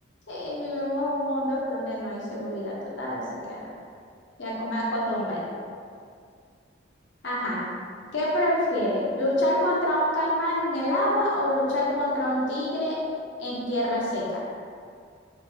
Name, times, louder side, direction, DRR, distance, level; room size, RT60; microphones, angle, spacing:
voice 1, 0.3-3.7 4.4-5.4 7.2-7.6 8.1-13.0 13.4-14.4, left 1 dB, 70° left, -5 dB, 0.8 m, -26 dB
3.1 x 2.2 x 3.2 m, 2.2 s
head